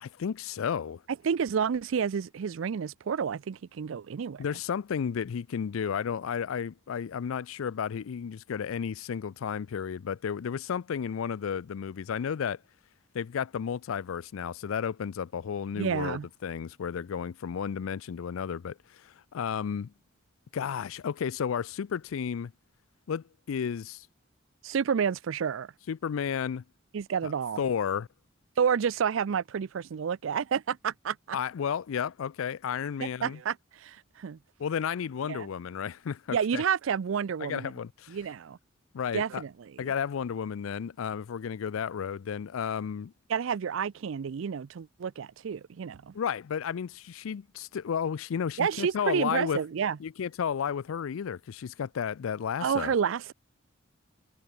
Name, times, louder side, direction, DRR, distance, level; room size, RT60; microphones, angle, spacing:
voice 1, 0.0-1.0 4.4-12.6 13.1-19.9 20.5-22.5 23.1-24.1 25.9-26.6 27.2-27.3 27.6-28.1 31.3-33.4 34.6-36.6 37.4-38.2 38.9-39.4 39.8-43.1 46.1-49.6 50.0-52.9, left 7 dB, 90° left, 0.4 m, -32 dB
voice 2, 1.2-4.4 15.8-16.3 24.6-25.7 26.9-27.6 28.6-31.4 33.0-34.4 35.3-35.5 36.3-37.7 38.1-38.6 39.1-39.9 43.3-46.1 48.6-50.0 52.6-53.3, right 7 dB, 75° right, 0.4 m, -30 dB
head